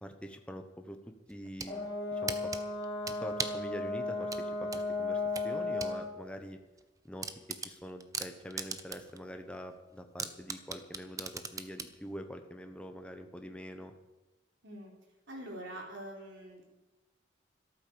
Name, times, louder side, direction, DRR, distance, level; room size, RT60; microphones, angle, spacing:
voice 1, 0.0-1.0 1.3-2.5 3.2-6.6 7.0-7.3 7.6-13.9, equal, 5° left, 5 dB, 1.2 m, -45 dB
sound 1, 1.3-1.7 2.3-3.7 4.3-6.0 6.3-6.4 6.8-6.9 7.2-9.2 9.5-9.6 10.2-11.9, right 5 dB, 20° right, 0.8 m, -38 dB
Brass instrument, 1.6-6.1, left 3 dB, 25° left, 3.5 m, -35 dB
voice 2, 15.3-16.7, right 1 dB, 90° right, -1 dB, 4.2 m, -44 dB
13.5 x 12.5 x 7.0 m, 1.1 s
head